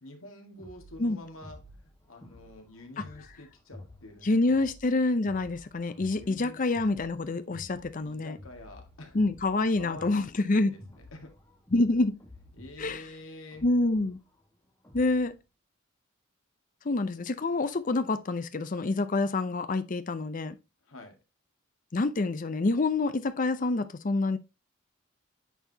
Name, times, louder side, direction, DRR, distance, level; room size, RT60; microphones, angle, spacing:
voice 1, 0.0-4.7 5.9-6.6 8.0-9.2 9.7-11.3 12.5-13.7 20.8-21.2, left 1 dB, 85° left, 1.8 m, -48 dB
sound 1, 0.6-15.4, left 1 dB, 15° left, 1.8 m, -52 dB
voice 2, 4.2-8.4 9.1-10.8 11.7-12.2 12.8-13.0 13.6-14.2 14.9-15.4 16.8-20.6 21.9-24.4, left 2 dB, 40° left, 0.6 m, -27 dB
9.0 x 4.6 x 2.8 m
head